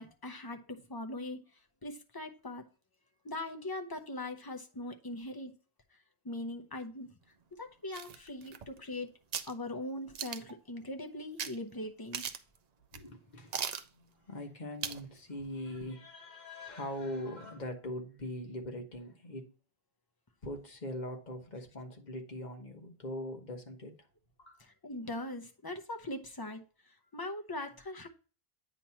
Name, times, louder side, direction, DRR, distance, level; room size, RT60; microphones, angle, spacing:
voice 1, 0.0-1.4 1.8-2.6 3.2-5.5 5.9-6.0 6.2-7.2 7.6-9.1 9.4-12.3 24.6-28.1, left 1 dB, 25° left, 0.8 m, -41 dB
sound 1, 7.9-8.9 9.3-9.5 10.1-10.6 11.4-11.5 11.8-11.9 12.1-12.6 12.9-13.0 13.5-13.9 14.8-15.1 15.4-15.5, right 7 dB, 50° right, 0.5 m, -38 dB
voice 2, 12.9-13.6 13.9-19.4 20.4-24.1 24.4-24.6, left 1 dB, 45° left, 1.2 m, -41 dB
8.9 x 3.0 x 5.6 m
omnidirectional pair, 1.1 m